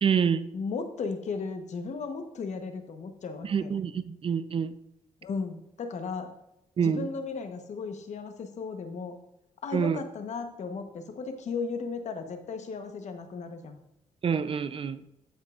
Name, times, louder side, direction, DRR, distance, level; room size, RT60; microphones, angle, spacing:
voice 1, 0.0-0.5 3.4-4.7 6.8-7.1 9.7-10.0 14.2-15.0, right 7 dB, 45° right, 0.5 m, -27 dB
voice 2, 0.5-3.7 5.2-6.3 6.8-9.2 9.6-13.8, left 4 dB, 60° left, 1.0 m, -35 dB
14.5 x 5.4 x 2.5 m
cardioid pair, 85°, 13 cm